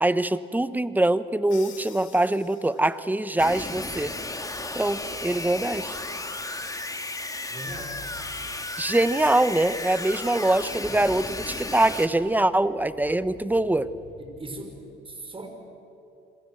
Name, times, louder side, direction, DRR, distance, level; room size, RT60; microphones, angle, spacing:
voice 1, 0.0-4.1 4.7-6.0 8.8-13.9, right 1 dB, 10° right, 14 dB, 1.0 m, -23 dB
Crash cymbal, 1.5-3.2, left 8 dB, 80° left, 3.3 m, -47 dB
sound 1, 3.4-12.1, left 2 dB, 15° left, 2.4 m, -34 dB
voice 2, 7.5-8.0 10.1-10.2 14.2-14.8 15.0-15.5, right 2 dB, 25° right, 4 dB, 5.1 m, -39 dB
sound 2, 7.7-14.6, left 3 dB, 60° left, 5.1 m, -52 dB
30.0 x 22.0 x 7.8 m, 2.8 s
cardioid pair, 90°, 20 cm